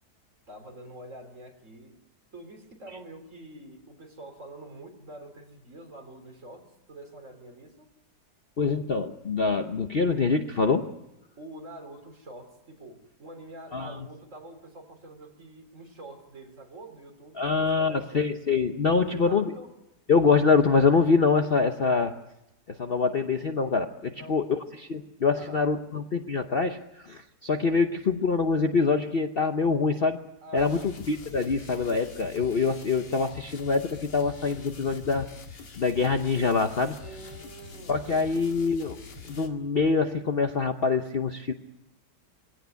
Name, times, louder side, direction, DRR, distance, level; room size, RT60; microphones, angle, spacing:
voice 1, 0.5-2.0 2.3-7.9 11.4-18.2 18.8-19.7 24.1-24.6 25.3-25.7 30.4-30.9 37.0-38.7, right 1 dB, 45° right, 4 dB, 3.8 m, -46 dB
voice 2, 8.6-10.9 13.7-13.9 17.4-19.4 20.1-22.1 22.7-30.2 30.5-35.3 35.8-37.0 37.9-39.0 39.3-41.5, left 4 dB, 40° left, 6 dB, 0.9 m, -25 dB
sound 1, 30.6-39.5, left 4 dB, 80° left, 2.7 m, -45 dB
22.5 x 17.0 x 9.3 m, 0.90 s
omnidirectional pair, 1.8 m